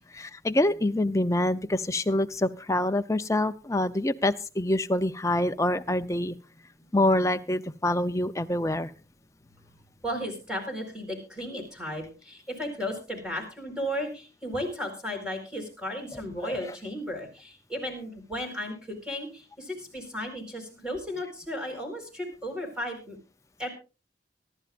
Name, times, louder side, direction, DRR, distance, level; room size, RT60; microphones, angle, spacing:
voice 1, 0.1-6.3 6.9-8.9 16.4-16.7, left 1 dB, 15° left, 10 dB, 0.6 m, -26 dB
voice 2, 10.0-23.2 23.6-23.7, equal, 5° right, 1 dB, 4.4 m, -35 dB
24.0 x 12.0 x 2.5 m, 0.31 s
head